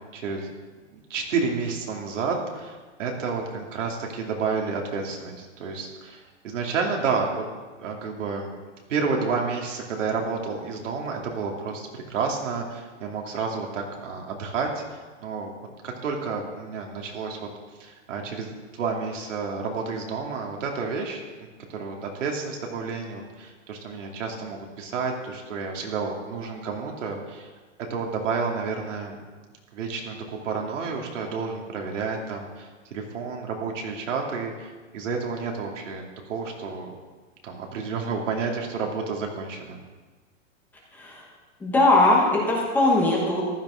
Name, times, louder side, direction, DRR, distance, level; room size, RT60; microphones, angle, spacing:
voice 1, 0.1-0.5 0.9-7.4 7.8-8.5 8.9-14.8 15.2-15.5 15.8-17.4 17.8-27.5 27.9-29.2 29.7-36.9 37.4-39.8, right 5 dB, 85° right, 0 dB, 2.8 m, -30 dB
voice 2, 40.9-41.3 41.6-43.4, left 2 dB, 5° left, -3 dB, 0.9 m, -20 dB
14.5 x 12.0 x 3.8 m, 1.4 s
supercardioid pair, 180°, 36 cm